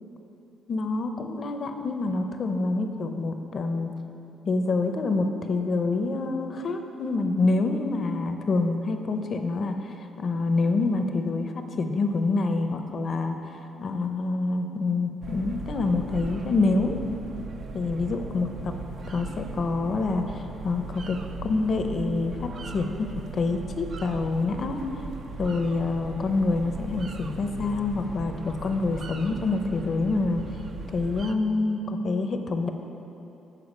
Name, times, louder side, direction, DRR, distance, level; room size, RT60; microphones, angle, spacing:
voice 1, 0.7-3.9 4.5-17.0 17.7-18.8 19.1-24.8 25.4-30.4 30.9-32.7, left 3 dB, 50° left, 6 dB, 0.6 m, -27 dB
sound 1, 15.2-31.3, right 3 dB, 55° right, 0.5 m, -38 dB
8.3 x 4.6 x 7.1 m, 2.9 s
cardioid pair, 90°, 0 cm